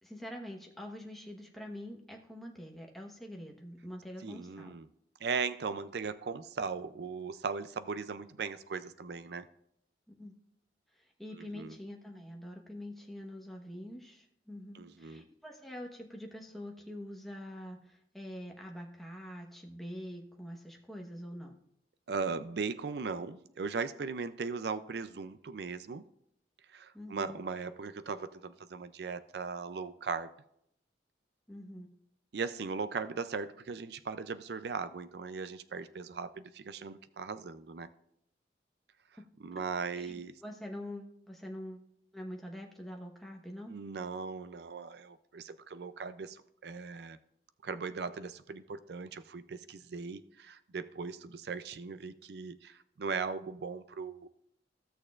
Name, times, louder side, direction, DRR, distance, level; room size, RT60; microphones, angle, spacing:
voice 1, 0.0-4.8 10.1-10.4 10.9-21.5 26.9-27.4 31.5-31.9 39.2-39.3 39.5-39.6 39.9-41.8 42.1-43.8, equal, ahead, 0 dB, 1.1 m, -45 dB
voice 2, 4.2-4.9 5.2-9.5 11.5-11.7 14.7-15.2 22.1-26.0 26.7-30.3 32.3-37.9 39.4-40.3 43.7-47.2 47.6-54.3, right 5 dB, 65° right, 12 dB, 0.4 m, -38 dB
15.5 x 6.5 x 2.5 m, 0.73 s
head